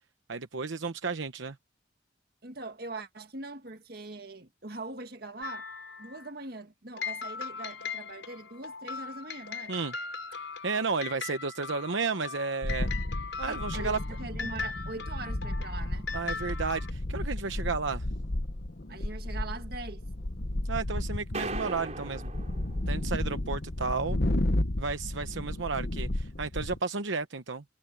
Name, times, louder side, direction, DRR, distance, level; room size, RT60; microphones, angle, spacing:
voice 1, 0.3-1.5 9.7-9.9 10.3-12.9 13.4-14.0 16.1-18.1 20.7-22.3 22.9-24.2 24.8-27.6, right 4 dB, 75° right, 0.9 m, -33 dB
voice 2, 2.4-5.7 6.0-9.7 13.5-16.1 18.9-20.0, right 3 dB, 50° right, 1.9 m, -42 dB
sound 1, 5.4-6.3 7.0-16.9, left 5 dB, 80° left, 5.2 m, -39 dB
sound 2, 12.6-26.8, left 1 dB, 55° left, 1.2 m, -33 dB
sound 3, 21.3-23.3, right 3 dB, 35° right, 4.6 m, -38 dB
head